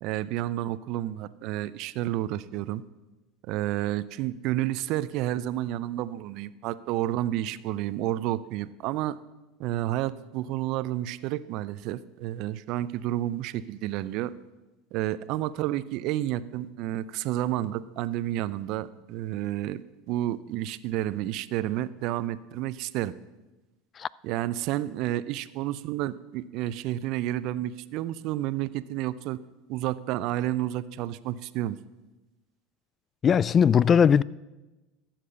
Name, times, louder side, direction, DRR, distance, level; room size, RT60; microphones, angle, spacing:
voice 1, 0.0-2.8 3.5-9.2 9.6-14.3 14.9-19.8 20.1-23.1 24.2-29.4 29.7-31.8, right 14 dB, 55° right, 0.5 m, -30 dB
voice 2, 33.2-34.2, left 7 dB, 35° left, 0.3 m, -19 dB
13.0 x 7.6 x 6.8 m
hypercardioid pair, 80°, 0 cm